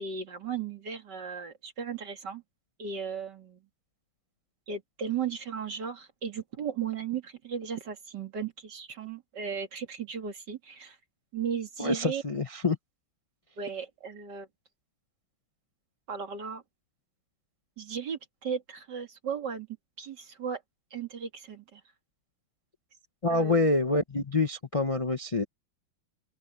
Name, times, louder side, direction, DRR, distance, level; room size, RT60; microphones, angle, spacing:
voice 1, 0.0-2.4 2.8-3.6 4.7-11.0 11.3-12.2 13.6-14.5 16.1-16.6 17.8-19.7 20.0-20.6 20.9-21.8 23.3-23.7, right 6 dB, 55° right, 2.9 m, -36 dB
voice 2, 11.8-12.8 23.2-25.4, left 2 dB, 60° left, 0.3 m, -26 dB
open air
omnidirectional pair, 2.2 m